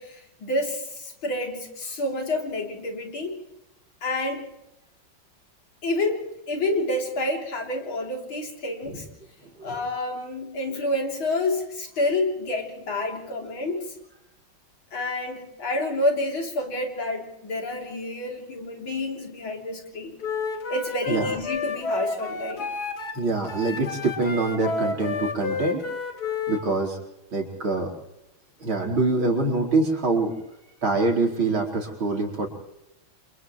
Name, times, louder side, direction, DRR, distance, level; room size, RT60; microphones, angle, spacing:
voice 1, 0.0-3.4 4.0-4.5 5.8-9.1 9.6-13.9 14.9-20.2 20.7-22.7, left 2 dB, 80° left, 1 dB, 4.3 m, -29 dB
Wind instrument woodwind instrument, 20.2-23.2 23.4-26.6, left 4 dB, 50° left, 2.4 m, -30 dB
voice 2, 23.1-25.8 26.5-27.0 27.3-27.9 28.6-30.3 30.8-32.5, right 3 dB, 80° right, 0 dB, 5.1 m, -25 dB
29.5 x 28.0 x 3.2 m, 0.89 s
omnidirectional pair, 2.2 m